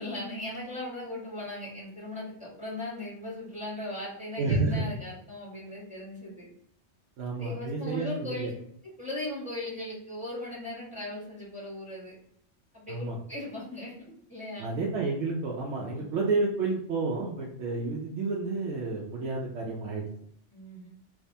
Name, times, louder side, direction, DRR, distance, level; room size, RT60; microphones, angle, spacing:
voice 1, 0.0-6.5 7.3-8.5 8.8-12.1 12.7-14.7 15.9-16.1 20.5-20.9, left 1 dB, 5° right, -7 dB, 1.4 m, -38 dB
voice 2, 4.4-4.8 7.2-8.5 12.9-13.2 14.6-20.1, right 3 dB, 75° right, -3 dB, 0.9 m, -30 dB
3.4 x 3.2 x 2.7 m, 0.68 s
omnidirectional pair, 1.2 m